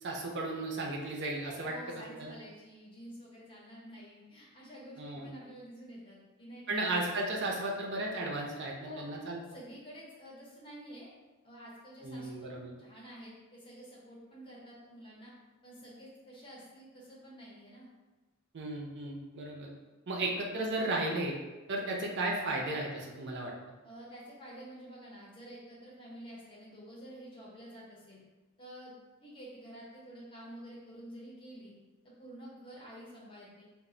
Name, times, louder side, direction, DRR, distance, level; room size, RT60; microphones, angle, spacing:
voice 1, 0.0-2.3 5.0-5.3 6.7-9.4 12.0-12.8 18.5-19.7 20.1-21.3 21.7-23.5, right 2 dB, 55° right, -1 dB, 0.5 m, -35 dB
voice 2, 1.6-6.8 8.8-9.0 9.5-11.1 11.4-15.3 15.6-17.9 20.2-20.3 20.8-20.9 23.8-28.2 28.6-28.9 29.2-31.7 32.0-33.6, equal, 25° left, -6 dB, 0.6 m, -49 dB
2.1 x 2.0 x 3.6 m, 1.2 s
head